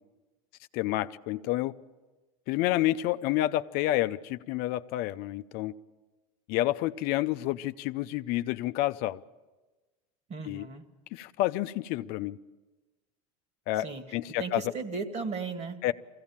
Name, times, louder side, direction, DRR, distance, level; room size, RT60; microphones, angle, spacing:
voice 1, 0.7-1.7 2.5-5.7 6.5-9.2 10.4-10.7 11.1-12.4 13.7-14.6 15.8-15.9, left 15 dB, 60° left, 0.6 m, -29 dB
voice 2, 10.3-10.8 13.8-14.0 14.4-15.8, right 4 dB, 40° right, 2.2 m, -35 dB
22.5 x 16.5 x 7.3 m
supercardioid pair, 100°, 18 cm